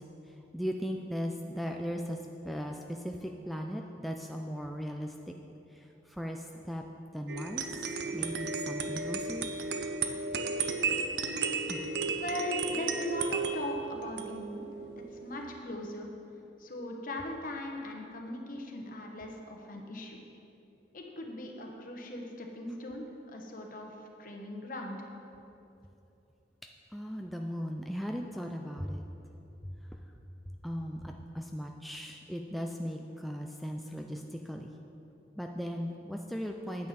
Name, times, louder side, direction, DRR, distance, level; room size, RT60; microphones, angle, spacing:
voice 1, 0.5-2.2 2.4-5.3 5.7-6.8 7.1-7.7 8.1-9.5 11.7-11.9 26.9-29.0 30.6-34.7 35.4-36.9, equal, ahead, 2 dB, 0.3 m, -37 dB
sound 1, 7.3-15.6, right 4 dB, 65° right, 0.6 m, -34 dB
voice 2, 12.2-14.6 15.0-16.1 16.6-20.2 20.9-23.9 24.2-25.1, left 1 dB, 50° left, 2 dB, 1.1 m, -39 dB
9.4 x 8.9 x 4.2 m, 2.9 s
head